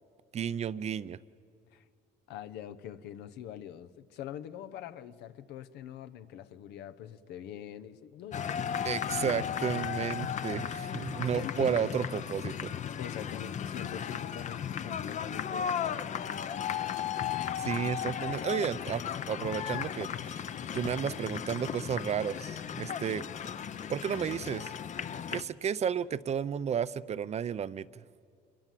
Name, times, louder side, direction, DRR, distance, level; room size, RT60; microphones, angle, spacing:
voice 1, 0.3-1.2 8.9-12.7 17.6-23.3 23.9-24.7 25.3-28.0, right 8 dB, 40° right, 16 dB, 0.6 m, -33 dB
voice 2, 2.3-9.3 10.0-10.1 11.4-11.9 13.0-16.1, left 10 dB, 85° left, 13 dB, 0.9 m, -44 dB
sound 1, 8.3-25.4, left 8 dB, 45° left, 0.7 m, -35 dB
26.5 x 22.5 x 7.6 m, 2.4 s
cardioid pair, 110°, 17 cm